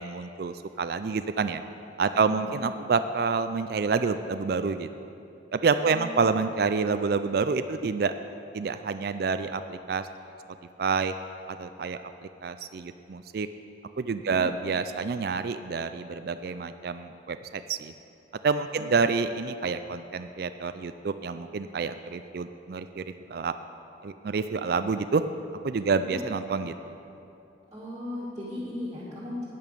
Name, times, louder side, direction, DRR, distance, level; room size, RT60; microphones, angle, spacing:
voice 1, 0.0-1.6 2.0-5.1 5.5-8.1 8.5-10.1 10.8-11.1 11.5-13.5 14.0-17.9 18.4-23.5 24.0-25.2 25.6-26.9, right 4 dB, 50° right, 10 dB, 0.4 m, -28 dB
voice 2, 2.1-2.6 5.8-6.3 14.2-14.4 18.8-19.1 26.1-26.2 27.7-29.4, left 1 dB, 20° right, -8 dB, 2.1 m, -37 dB
10.5 x 9.4 x 6.8 m, 2.8 s
head